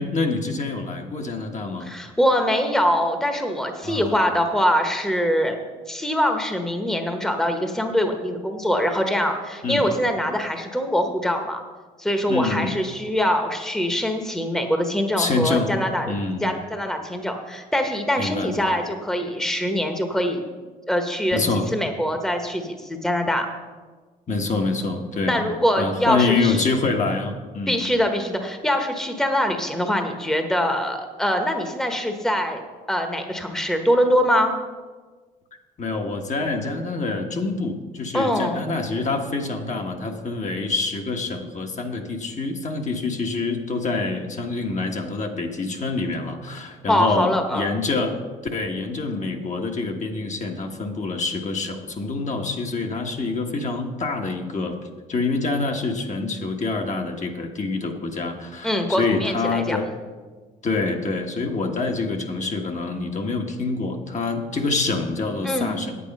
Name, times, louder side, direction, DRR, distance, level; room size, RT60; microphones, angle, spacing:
voice 1, 0.0-1.9 3.8-4.1 9.6-9.8 12.3-12.8 15.2-15.7 16.1-16.5 18.2-18.5 21.3-21.6 24.3-25.5 25.8-27.8 35.8-48.2 48.5-54.7 55.1-59.9 60.6-66.0, left 3 dB, 40° left, 2 dB, 1.5 m, -26 dB
voice 2, 1.8-5.6 5.9-11.6 12.0-16.1 16.4-20.4 20.9-21.4 21.7-23.5 25.3-26.6 27.7-32.6 32.9-34.5 38.1-38.6 46.9-47.7 58.6-59.8 65.4-65.8, equal, 5° left, 5 dB, 1.3 m, -23 dB
8.7 x 8.4 x 5.4 m, 1.4 s
supercardioid pair, 70°, 19 cm